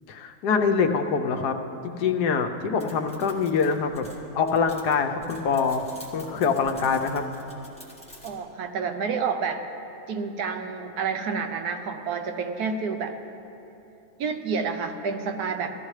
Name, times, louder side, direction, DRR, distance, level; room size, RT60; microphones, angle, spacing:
voice 1, 0.1-1.6 1.8-4.1 4.3-7.2, left 5 dB, 80° left, 6 dB, 1.2 m, -24 dB
sound 1, 2.8-8.4, left 1 dB, 5° left, 1.4 m, -48 dB
voice 2, 8.2-9.6 10.1-13.2 14.2-15.7, right 5 dB, 75° right, 6 dB, 1.2 m, -29 dB
15.5 x 13.5 x 3.2 m, 3.0 s
omnidirectional pair, 1.7 m